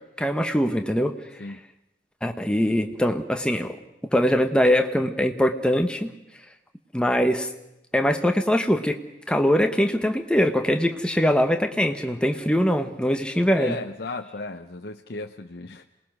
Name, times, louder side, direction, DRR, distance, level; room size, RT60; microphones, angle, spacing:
voice 1, 0.2-1.2 2.2-3.8 4.1-6.1 6.9-7.5 7.9-9.0 9.3-13.8, equal, 5° left, 6 dB, 1.1 m, -22 dB
voice 2, 13.5-15.9, left 2 dB, 55° left, 4 dB, 0.7 m, -35 dB
27.0 x 20.0 x 6.2 m, 0.89 s
head